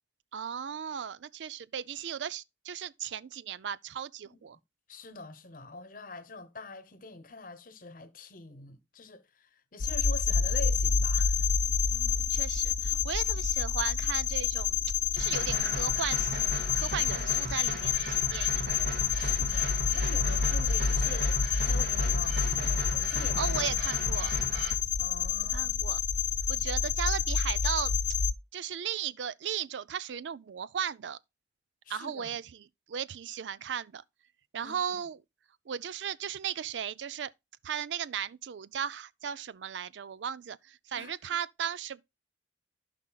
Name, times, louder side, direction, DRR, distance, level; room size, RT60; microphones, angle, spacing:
voice 1, 0.3-4.6 11.8-14.8 15.1-16.4 16.7-18.6 23.4-24.3 25.5-26.0 26.5-27.9 28.5-31.2 31.9-32.4 32.9-34.0 34.5-35.2 35.7-37.3 37.6-42.0, right 8 dB, 80° right, 0.4 m, -36 dB
voice 2, 4.9-11.5 19.2-23.6 25.0-25.7 31.8-32.4 34.6-35.0 40.9-41.1, left 2 dB, 50° left, 1.0 m, -45 dB
sound 1, 9.8-28.3, left 6 dB, 80° left, 0.6 m, -28 dB
sound 2, 15.2-24.7, right 1 dB, 60° right, 2.1 m, -38 dB
15.5 x 5.4 x 2.3 m
head